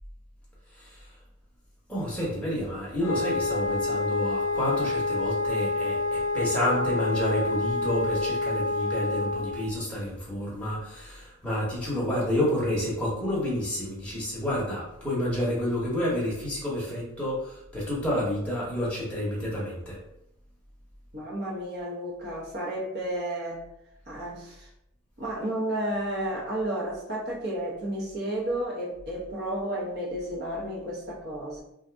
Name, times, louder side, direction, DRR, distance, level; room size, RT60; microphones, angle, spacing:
voice 1, 1.9-20.0, left 1 dB, 5° left, -6 dB, 0.9 m, -29 dB
Wind instrument woodwind instrument, 3.0-9.6, left 3 dB, 75° left, 0.3 m, -28 dB
voice 2, 21.1-23.6 24.1-24.7 25.2-31.6, right 1 dB, 45° right, -3 dB, 0.9 m, -32 dB
2.5 x 2.4 x 3.4 m, 0.81 s
head